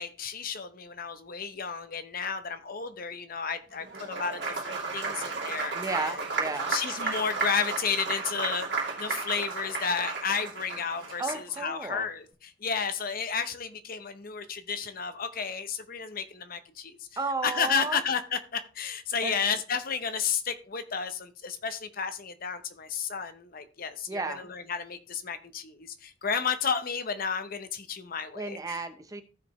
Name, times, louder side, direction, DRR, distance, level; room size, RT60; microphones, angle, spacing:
voice 1, 0.0-6.2 6.7-17.1 17.4-28.9, left 6 dB, 45° left, 10 dB, 0.8 m, -32 dB
Applause, 3.8-11.6, right 4 dB, 60° right, 2.6 m, -33 dB
voice 2, 5.7-6.7 11.2-12.1 17.2-18.0 19.2-19.3 24.1-24.4 28.3-29.2, right 3 dB, 20° right, 8 dB, 0.7 m, -33 dB
15.0 x 5.0 x 3.0 m, 0.34 s
head